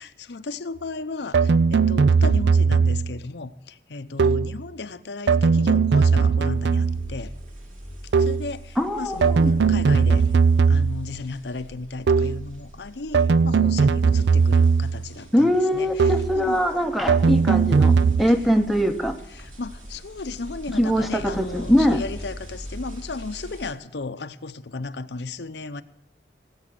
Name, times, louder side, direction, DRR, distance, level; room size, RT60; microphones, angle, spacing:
voice 1, 0.0-7.3 8.1-10.3 10.7-16.6 19.3-25.8, left 3 dB, 65° left, 10 dB, 0.7 m, -35 dB
sound 1, 1.3-3.2 4.2-4.6 5.3-7.2 8.1-8.5 9.2-11.1 12.1-12.5 13.1-15.1 16.0-16.4 17.1-18.2, right 5 dB, 70° right, 0.4 m, -19 dB
sound 2, 6.5-23.7, equal, 45° right, 3.0 m, -41 dB
voice 2, 8.8-9.5 15.3-19.2 20.8-22.0, equal, ahead, 7 dB, 0.8 m, -22 dB
18.0 x 8.4 x 7.7 m, 0.87 s
head